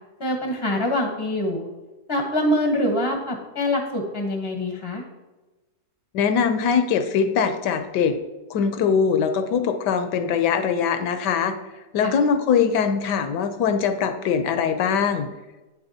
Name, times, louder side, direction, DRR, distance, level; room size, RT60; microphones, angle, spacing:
voice 1, 0.2-1.7 2.1-5.0 12.0-12.2, left 1 dB, 25° left, 2 dB, 0.5 m, -24 dB
voice 2, 6.1-8.2 8.5-11.6 11.9-15.3, left 6 dB, 75° left, 8 dB, 1.1 m, -22 dB
8.4 x 6.8 x 2.7 m, 1.1 s
omnidirectional pair, 2.0 m